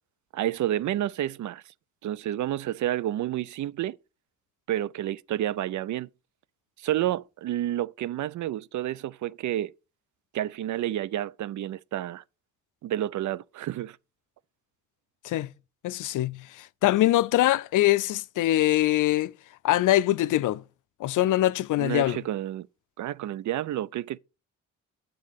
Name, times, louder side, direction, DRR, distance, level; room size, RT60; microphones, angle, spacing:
voice 1, 0.3-1.6 2.0-4.0 4.7-6.1 6.8-9.7 10.3-12.2 12.8-14.0 21.8-22.7 23.0-24.2, right 13 dB, 70° right, 0.5 m, -30 dB
voice 2, 15.8-19.3 19.6-20.6 21.0-22.2, left 15 dB, 75° left, 0.5 m, -23 dB
7.5 x 3.8 x 6.6 m
cardioid pair, 65°, 31 cm